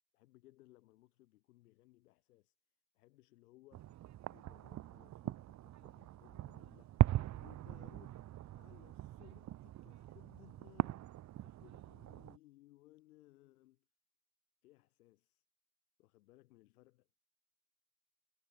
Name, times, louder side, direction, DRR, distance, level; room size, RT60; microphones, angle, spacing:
voice 1, 0.1-2.6 2.9-4.1 4.3-11.1 11.4-13.9 14.6-15.4 16.0-17.1, left 18 dB, 80° left, 7.3 m, -64 dB
sound 1, 3.7-12.4, right 14 dB, 40° right, 0.6 m, -39 dB
figure-of-eight pair, 50°, 45 cm